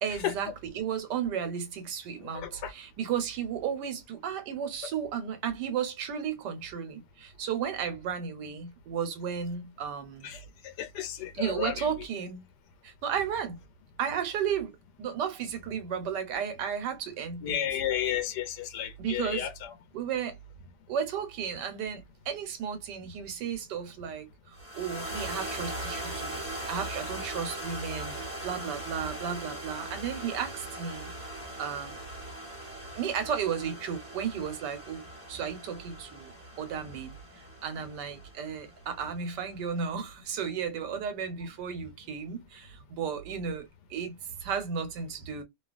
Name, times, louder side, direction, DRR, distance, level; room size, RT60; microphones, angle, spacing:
voice 1, 0.0-10.3 11.4-12.4 13.0-13.6 14.0-14.7 15.0-17.7 19.0-19.5 19.9-20.3 20.9-22.0 22.3-24.3 24.8-26.4 26.7-28.1 28.4-30.5 30.8-31.1 31.6-32.0 33.0-35.0 35.3-36.3 36.6-37.1 37.6-44.1 44.4-45.4, right 7 dB, 90° right, 1.4 m, -33 dB
voice 2, 2.3-2.7 10.2-10.4 10.8-11.7 17.4-19.5, left 10 dB, 85° left, 1.2 m, -32 dB
sound 1, 24.6-39.0, right 1 dB, 10° left, 1.0 m, -40 dB
2.8 x 2.4 x 2.4 m
omnidirectional pair, 1.8 m